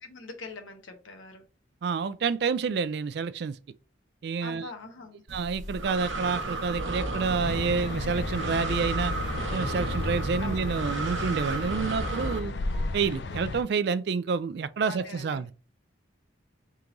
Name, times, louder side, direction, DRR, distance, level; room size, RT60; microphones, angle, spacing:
voice 1, 0.0-1.4 4.4-5.2 10.4-10.7 14.9-15.5, left 3 dB, 90° left, 1.0 m, -43 dB
voice 2, 1.8-3.6 4.2-4.7 5.3-9.1 9.5-12.5 12.9-15.5, right 5 dB, 55° right, 0.3 m, -28 dB
Breathing, 5.3-12.4, right 2 dB, 80° right, 0.9 m, -33 dB
sound 1, 7.4-13.6, left 3 dB, 60° left, 0.4 m, -34 dB
sound 2, 9.0-14.1, right 3 dB, 30° right, 1.0 m, -53 dB
3.7 x 2.9 x 3.8 m
head